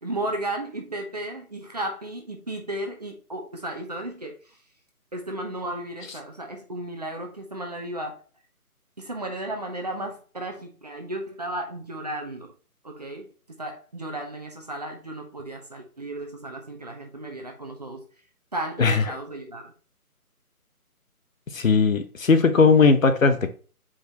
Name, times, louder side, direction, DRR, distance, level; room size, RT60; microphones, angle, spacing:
voice 1, 0.0-4.4 5.1-8.2 9.0-12.5 12.8-18.0 18.5-19.7, right 1 dB, 25° right, 0.9 m, -34 dB
voice 2, 21.5-23.5, left 4 dB, 60° left, 1.0 m, -18 dB
7.7 x 4.9 x 2.9 m
figure-of-eight pair, 165°, 45 cm